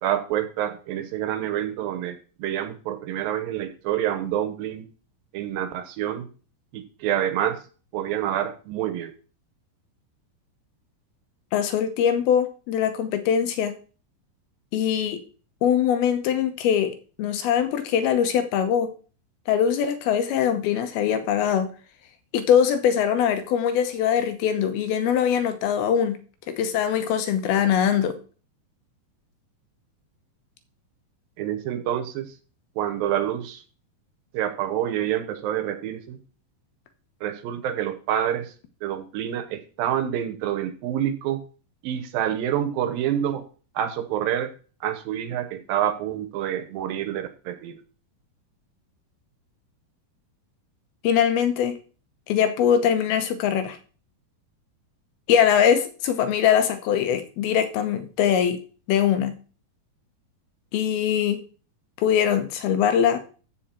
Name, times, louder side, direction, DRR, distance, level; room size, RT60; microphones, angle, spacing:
voice 1, 0.0-4.8 5.3-6.3 6.7-7.6 7.9-9.1 31.4-32.3 32.8-33.6 34.3-36.2 37.2-38.5 38.8-41.4 41.8-43.4 43.8-44.5 44.8-47.8, right 10 dB, 80° right, 10 dB, 2.6 m, -27 dB
voice 2, 11.5-13.8 14.7-15.2 15.6-18.9 19.5-21.7 22.3-26.2 26.5-28.2 51.0-51.8 52.3-53.8 55.3-58.6 58.9-59.3 60.7-61.4 62.0-63.2, left 8 dB, 85° left, 9 dB, 2.9 m, -22 dB
14.5 x 5.0 x 4.4 m, 0.38 s
omnidirectional pair, 4.3 m